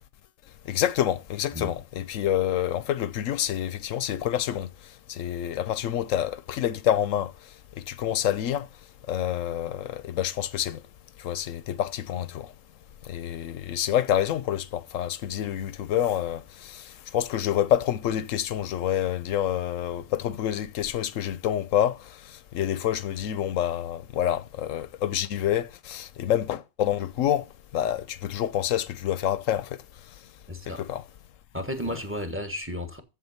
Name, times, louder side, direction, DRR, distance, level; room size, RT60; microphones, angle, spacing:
voice 1, 0.7-4.7 5.1-7.3 7.8-8.7 9.1-10.8 11.2-12.5 13.1-16.8 17.1-22.0 22.5-27.4 27.7-29.7 30.7-31.0, left 11 dB, 75° left, 1.1 m, -27 dB
voice 2, 30.5-30.8 31.5-33.0, left 1 dB, 10° right, 1.3 m, -33 dB
7.6 x 7.5 x 5.5 m
omnidirectional pair, 1.4 m